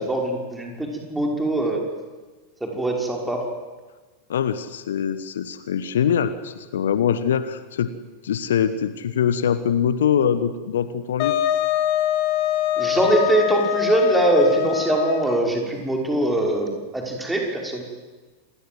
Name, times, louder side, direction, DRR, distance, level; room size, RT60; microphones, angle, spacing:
voice 1, 0.0-1.8 2.6-3.4 12.8-17.8, right 1 dB, 5° right, 0 dB, 5.8 m, -22 dB
voice 2, 4.3-7.9 8.2-11.4, left 8 dB, 60° left, 13 dB, 1.1 m, -23 dB
Wind instrument woodwind instrument, 11.2-15.6, left 13 dB, 45° left, 1.9 m, -24 dB
27.0 x 20.5 x 8.0 m, 1.3 s
figure-of-eight pair, 90°, 0 cm